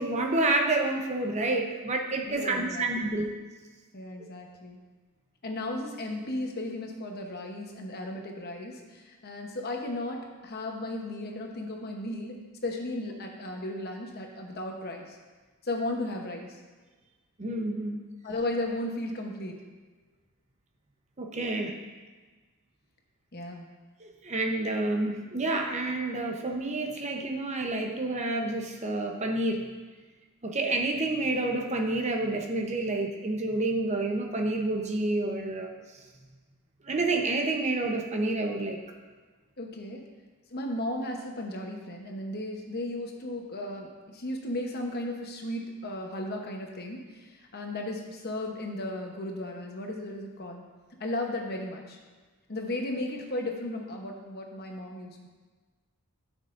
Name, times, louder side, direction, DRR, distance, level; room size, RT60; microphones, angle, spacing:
voice 1, 0.0-3.3 17.4-18.0 21.2-21.7 24.0-29.7 30.4-35.7 36.8-38.8, right 2 dB, 30° right, 2 dB, 0.8 m, -29 dB
voice 2, 2.2-3.1 3.9-4.8 5.4-15.2 15.6-16.5 18.2-19.6 23.3-23.7 39.6-40.1 40.5-50.6 51.0-52.0 52.5-55.3, left 1 dB, 45° left, 2 dB, 1.0 m, -35 dB
11.5 x 6.3 x 2.6 m, 1.3 s
head